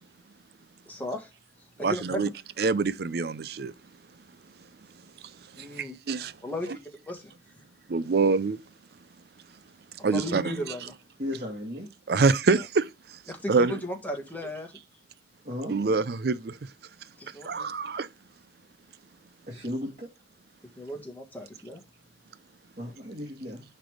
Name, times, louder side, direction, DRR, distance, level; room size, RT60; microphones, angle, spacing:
voice 1, 0.9-1.3 1.8-2.2 5.6-6.0 6.4-7.3 10.0-10.9 13.3-14.7 17.2-17.7 20.8-21.8, left 1 dB, 10° left, 1.6 m, -36 dB
voice 2, 1.8-2.3 2.6-3.7 6.1-6.3 7.9-8.6 10.0-10.6 12.1-12.8 13.5-13.8 15.7-16.4 17.5-18.1, right 4 dB, 55° right, 0.5 m, -25 dB
voice 3, 11.2-11.9 15.4-15.7 19.5-20.1 22.8-23.6, left 1 dB, 40° right, 1.6 m, -35 dB
10.0 x 3.4 x 5.0 m
head